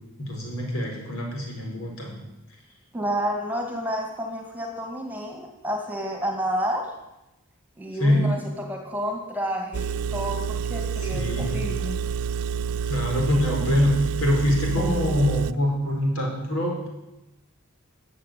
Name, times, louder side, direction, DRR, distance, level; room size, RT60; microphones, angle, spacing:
voice 1, 0.2-2.2 8.0-8.2 11.0-11.6 12.9-16.9, left 1 dB, 75° left, 0 dB, 4.7 m, -24 dB
voice 2, 2.9-6.9 7.8-8.4 8.7-12.0 14.8-15.2, equal, 5° right, 2 dB, 2.0 m, -30 dB
Engine, 9.7-15.5, right 7 dB, 80° right, 0.4 m, -28 dB
14.5 x 7.5 x 9.2 m, 0.94 s
head